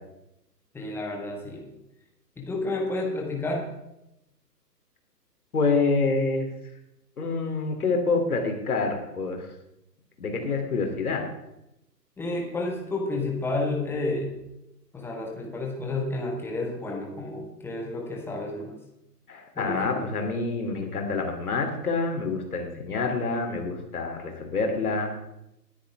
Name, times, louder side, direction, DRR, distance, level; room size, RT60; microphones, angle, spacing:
voice 1, 0.7-1.7 2.4-3.7 12.2-14.3 14.9-18.8 19.5-20.1, left 2 dB, 5° left, 0 dB, 1.4 m, -31 dB
voice 2, 5.5-6.5 7.2-9.5 10.2-11.3 19.3-25.1, left 4 dB, 60° left, 4 dB, 3.1 m, -27 dB
20.0 x 9.8 x 3.5 m, 0.87 s
figure-of-eight pair, 125°, 49 cm